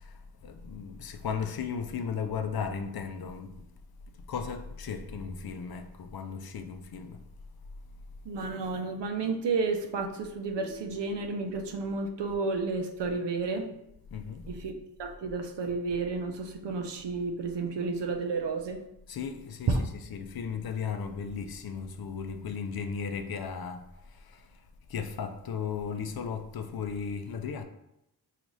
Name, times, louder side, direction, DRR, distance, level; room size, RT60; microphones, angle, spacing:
voice 1, 0.4-3.5 4.3-7.2 14.1-14.4 19.1-19.8 20.1-23.8 24.9-27.6, left 6 dB, 60° left, 0.5 m, -35 dB
voice 2, 8.2-13.7 14.5-14.7 15.0-18.8 19.7-19.9, right 4 dB, 90° right, 0.5 m, -31 dB
sound 1, 10.6-12.7, left 3 dB, 25° left, 0.9 m, -53 dB
3.9 x 2.4 x 3.0 m
cardioid pair, 50°, 41 cm